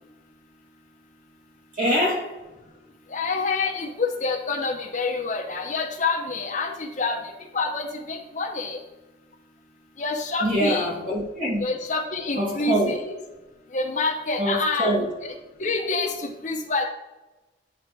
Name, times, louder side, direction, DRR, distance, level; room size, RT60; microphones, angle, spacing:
voice 1, 1.8-2.3 10.4-11.6 12.4-12.9 14.4-15.1, equal, 45° right, -2 dB, 2.0 m, -24 dB
voice 2, 3.1-8.8 10.0-10.9 11.6-13.1 13.7-14.9 15.6-16.9, left 3 dB, 40° left, 3 dB, 0.7 m, -27 dB
9.5 x 3.3 x 4.6 m, 1.1 s
head